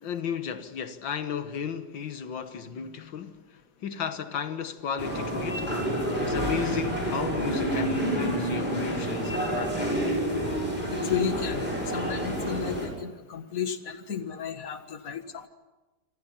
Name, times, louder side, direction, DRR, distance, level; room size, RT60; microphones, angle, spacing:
voice 1, 0.0-5.7 6.2-10.2, left 7 dB, 85° left, 2.1 m, -34 dB
sound 1, 5.0-12.9, right 1 dB, 25° left, 6.3 m, -29 dB
voice 2, 10.9-11.6 11.9-15.5, left 8 dB, 50° left, 2.0 m, -33 dB
27.0 x 26.5 x 5.8 m
omnidirectional pair, 2.0 m